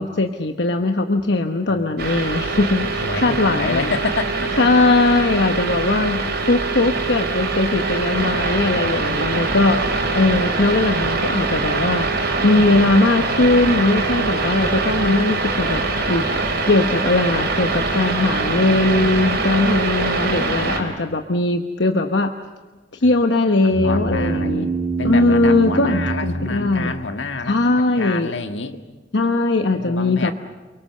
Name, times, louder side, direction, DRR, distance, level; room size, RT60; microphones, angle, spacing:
voice 1, 0.0-3.9 4.6-12.1 12.4-15.8 16.1-22.3 22.9-24.7 25.0-26.9 27.5-28.3 29.1-30.3, left 2 dB, 70° left, 6 dB, 1.1 m, -19 dB
voice 2, 1.7-4.7 6.4-6.8 8.7-9.6 14.1-15.2 19.2-19.4 20.3-21.2 23.0-23.1 23.6-24.7 25.0-28.8 29.7-30.3, left 3 dB, 85° left, 7 dB, 1.7 m, -30 dB
sound 1, 2.0-20.8, right 3 dB, 65° right, 4.5 m, -23 dB
sound 2, 23.7-27.4, right 3 dB, 20° right, 1.6 m, -25 dB
29.0 x 23.0 x 6.7 m, 1.2 s
head